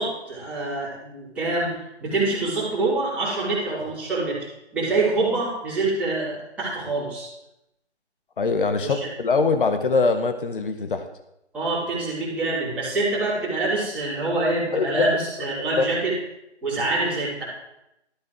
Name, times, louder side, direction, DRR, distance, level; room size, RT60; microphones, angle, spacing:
voice 1, 0.0-4.4 4.7-7.3 8.8-9.0 11.5-16.1 16.6-17.4, right 2 dB, 5° right, -11 dB, 3.3 m, -25 dB
voice 2, 8.4-11.0 14.7-15.1 15.8-15.9, left 4 dB, 50° left, 8 dB, 1.1 m, -22 dB
13.0 x 10.5 x 3.2 m, 0.86 s
figure-of-eight pair, 155°, 35 cm